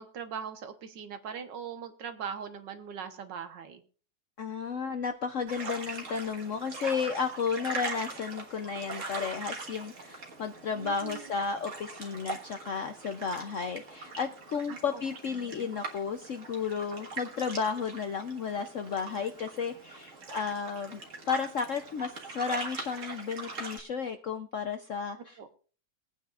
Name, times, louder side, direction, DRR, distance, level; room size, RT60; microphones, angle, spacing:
voice 1, 0.0-3.8 10.7-11.3 14.7-15.0 15.4-15.8 25.4-25.5, right 7 dB, 70° right, 8 dB, 1.7 m, -41 dB
voice 2, 4.4-21.0 21.3-25.4, left 6 dB, 65° left, 7 dB, 0.8 m, -33 dB
sound 1, 5.5-23.8, right 3 dB, 45° right, 1.8 m, -42 dB
21.5 x 9.0 x 2.4 m, 0.38 s
omnidirectional pair, 2.1 m